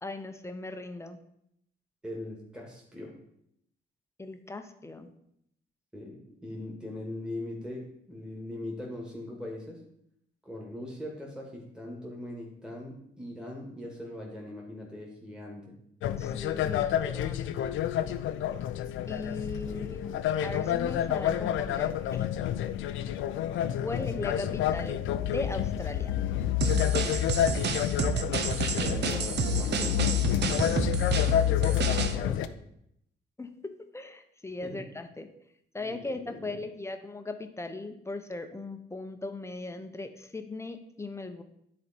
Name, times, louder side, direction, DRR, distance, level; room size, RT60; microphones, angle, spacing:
voice 1, 0.0-1.2 4.2-5.1 16.2-17.8 19.1-22.2 23.8-26.2 33.4-35.3 35.7-41.4, left 2 dB, 15° left, 7 dB, 0.8 m, -38 dB
voice 2, 2.0-3.1 5.9-9.8 10.4-15.7 19.7-20.1 28.8-32.4 34.6-34.8 35.8-36.5, left 1 dB, 5° right, -2 dB, 2.1 m, -41 dB
sound 1, 16.0-32.5, left 11 dB, 80° left, 0.5 m, -29 dB
sound 2, 26.6-32.2, right 7 dB, 60° right, 0.8 m, -31 dB
9.8 x 4.3 x 4.4 m, 0.75 s
cardioid pair, 90°, 20 cm